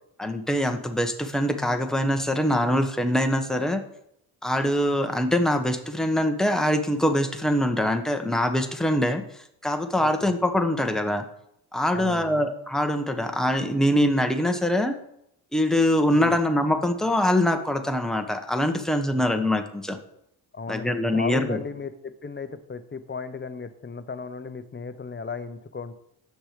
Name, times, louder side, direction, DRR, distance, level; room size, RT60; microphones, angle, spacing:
voice 1, 0.2-3.8 4.4-9.2 9.6-11.2 11.7-15.0 15.5-20.0 20.7-21.6, left 1 dB, ahead, 5 dB, 1.0 m, -23 dB
voice 2, 10.0-10.3 11.9-12.4 16.1-16.4 19.1-19.2 20.5-25.9, left 4 dB, 25° left, 11 dB, 0.8 m, -36 dB
7.9 x 6.1 x 5.0 m, 0.76 s
cardioid pair, 60°, 44 cm